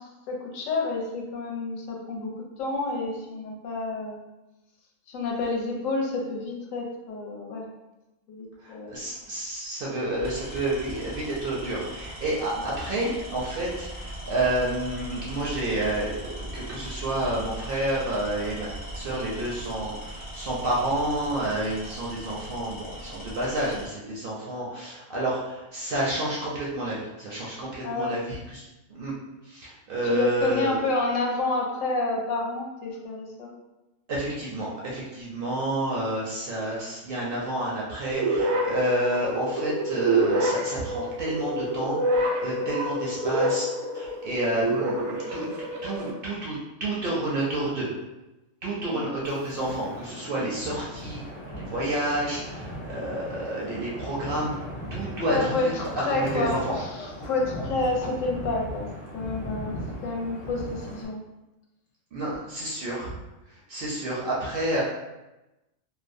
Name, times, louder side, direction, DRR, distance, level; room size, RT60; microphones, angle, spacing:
voice 1, 0.0-2.3 2.6-4.2 5.1-7.7 8.3-9.1 12.5-12.7 13.0-13.1 27.8-28.2 30.0-33.5 48.8-49.1 55.3-59.7 60.0-61.2, left 3 dB, 80° left, 0 dB, 0.9 m, -29 dB
voice 2, 8.6-28.6 28.9-29.1 29.4-30.8 34.1-43.7 43.9-47.9 48.6-51.2 51.5-54.5 54.9-55.4 56.1-56.7 62.1-63.1 63.7-64.8, right 1 dB, 65° right, -5 dB, 0.6 m, -29 dB
Tools, 9.0-9.3 10.1-23.9, right 1 dB, 10° left, 0.5 m, -39 dB
sound 1, 38.1-46.1, right 1 dB, 85° right, 1.0 m, -27 dB
Wind, 49.2-61.1, left 1 dB, 45° left, 1.0 m, -37 dB
2.6 x 2.0 x 2.5 m, 1.0 s
omnidirectional pair, 1.4 m